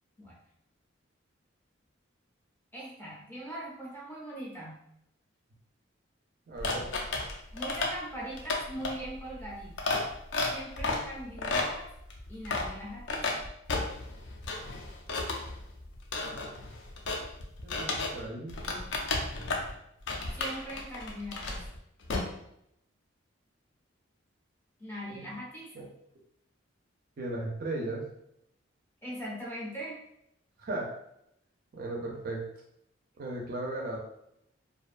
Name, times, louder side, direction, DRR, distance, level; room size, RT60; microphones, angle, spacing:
voice 1, 2.7-4.8 7.5-9.9 10.5-11.9 12.3-13.4 20.4-21.5 24.8-25.7 29.0-30.0, equal, 10° left, -5 dB, 0.5 m, -40 dB
voice 2, 6.5-6.9 17.6-18.8 25.1-25.2 25.7-25.9 27.2-28.1 30.6-30.9 31.7-32.5 33.2-34.0, right 2 dB, 45° right, -1 dB, 0.4 m, -36 dB
sound 1, 6.6-18.2 18.5-19.7 20.1-21.8 22.0-22.2, left 3 dB, 65° left, 0.4 m, -33 dB
2.5 x 2.2 x 2.4 m, 0.77 s
head